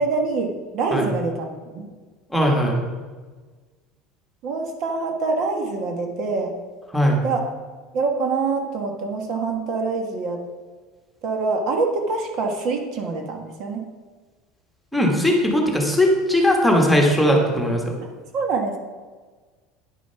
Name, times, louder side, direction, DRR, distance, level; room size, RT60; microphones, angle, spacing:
voice 1, 0.0-1.9 4.4-6.5 7.2-7.4 7.9-10.4 11.2-13.8 18.3-18.8, right 4 dB, 50° right, 3 dB, 1.3 m, -25 dB
voice 2, 2.3-2.8 6.9-7.2 14.9-17.9, equal, ahead, 0 dB, 1.4 m, -19 dB
9.6 x 6.2 x 5.7 m, 1.4 s
cardioid pair, 145°, 0 cm